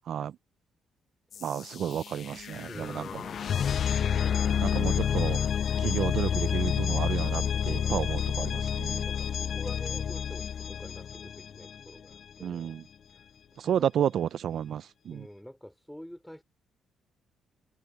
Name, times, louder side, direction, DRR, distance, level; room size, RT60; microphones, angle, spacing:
sound 1, 1.3-12.1, left 8 dB, 55° left, 0.4 m, -29 dB
voice 1, 1.4-3.2 4.1-5.4 5.8-9.0 12.4-12.9 13.6-15.3, right 9 dB, 65° right, 0.4 m, -32 dB
voice 2, 2.7-4.3 4.6-5.1 7.6-8.2 8.6-12.8 13.1-13.2 13.6-14.1 15.1-16.4, equal, ahead, 5.2 m, -48 dB
cardioid pair, 90°, 0 cm